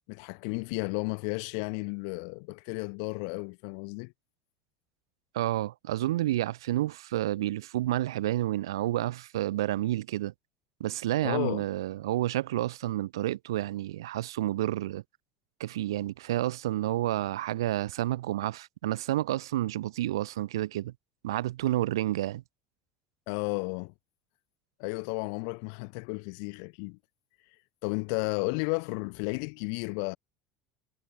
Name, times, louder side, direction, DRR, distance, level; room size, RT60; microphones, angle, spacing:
voice 1, 0.1-4.1 11.2-11.6 23.3-23.9 24.8-27.0 27.8-30.2, left 40 dB or more, 55° left, 1.0 m, -33 dB
voice 2, 5.3-10.3 10.8-15.0 15.6-20.9 21.2-22.4, right 14 dB, 65° right, 0.9 m, -30 dB
figure-of-eight pair, 65°, 3 cm